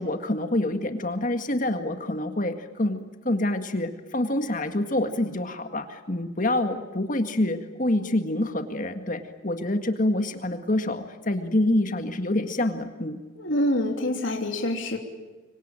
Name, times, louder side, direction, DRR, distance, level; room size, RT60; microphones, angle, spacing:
voice 1, 0.0-13.2, left 1 dB, 40° left, 7 dB, 1.9 m, -26 dB
voice 2, 13.4-15.0, left 1 dB, 70° left, 3 dB, 3.3 m, -26 dB
26.0 x 24.0 x 9.1 m, 1.2 s
head